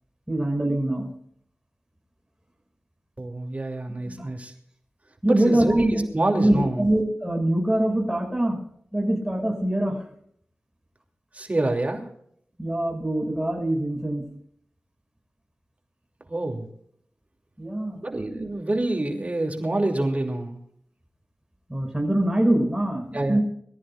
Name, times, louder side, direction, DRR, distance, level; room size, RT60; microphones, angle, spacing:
voice 1, 0.3-1.1 4.1-4.3 5.2-6.0 6.4-8.6 8.9-10.1 12.6-14.3 17.6-18.0 21.7-23.4, right 1 dB, 10° right, 1 dB, 6.2 m, -24 dB
voice 2, 3.2-4.5 5.3-6.9 11.3-12.0 16.3-16.7 18.0-20.6 23.1-23.4, right 2 dB, 35° right, 2 dB, 2.9 m, -26 dB
23.5 x 14.0 x 2.5 m, 0.66 s
wide cardioid pair, 55°, 4 cm